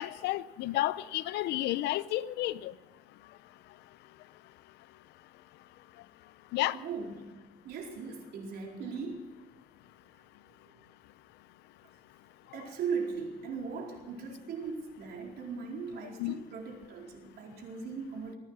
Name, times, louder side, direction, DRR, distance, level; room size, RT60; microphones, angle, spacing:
voice 1, 0.0-2.7 6.5-6.8 16.2-16.4, left 15 dB, 85° left, 0.7 m, -31 dB
voice 2, 6.7-7.2 7.6-9.3 12.5-18.4, right 5 dB, 70° right, 4.4 m, -38 dB
22.5 x 9.6 x 6.3 m
cardioid pair, 110°, 17 cm